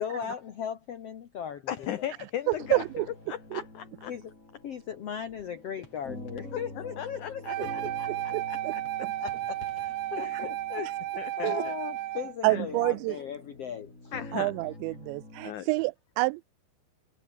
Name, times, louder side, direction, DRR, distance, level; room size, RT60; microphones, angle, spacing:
voice 1, 0.0-2.1 4.1-4.3 4.6-8.4 9.0-10.8 11.4-14.1, left 8 dB, 65° left, 1.5 m, -38 dB
sound 1, 0.7-15.9, left 5 dB, 35° left, 4.9 m, -59 dB
voice 2, 1.7-4.1 6.5-8.1 8.5-8.6 10.2-10.9 11.2-11.7 12.5-12.6 14.1-14.5 15.4-15.7, left 11 dB, 80° left, 1.7 m, -37 dB
voice 3, 2.5-3.1 3.5-3.6 8.3-8.7 9.0-9.1 11.4-11.6 12.4-13.2 14.3-16.4, right 25 dB, 85° right, 2.8 m, -28 dB
sound 2, 2.6-15.5, left 2 dB, 15° left, 6.6 m, -47 dB
Wind instrument woodwind instrument, 7.4-12.3, right 14 dB, 70° right, 2.2 m, -33 dB
omnidirectional pair, 5.1 m